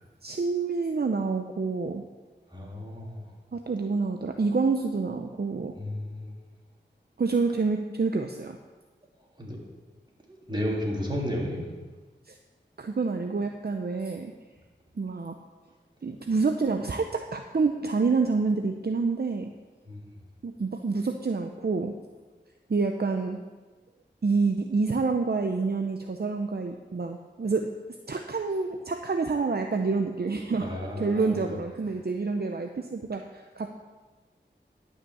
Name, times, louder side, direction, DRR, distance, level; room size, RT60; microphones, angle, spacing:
voice 1, 0.2-2.0 3.5-5.7 7.2-8.6 12.3-12.4 12.8-14.3 15.0-15.4 16.0-19.5 20.4-22.0 22.7-23.4 24.2-27.8 28.1-33.7, right 4 dB, 55° right, 5 dB, 0.7 m, -28 dB
voice 2, 2.5-3.3 5.8-6.3 9.4-9.6 10.5-11.7 19.9-20.1 30.5-31.5, equal, 25° right, -4 dB, 3.4 m, -33 dB
12.0 x 5.8 x 7.1 m, 1.3 s
wide cardioid pair, 40°, 19 cm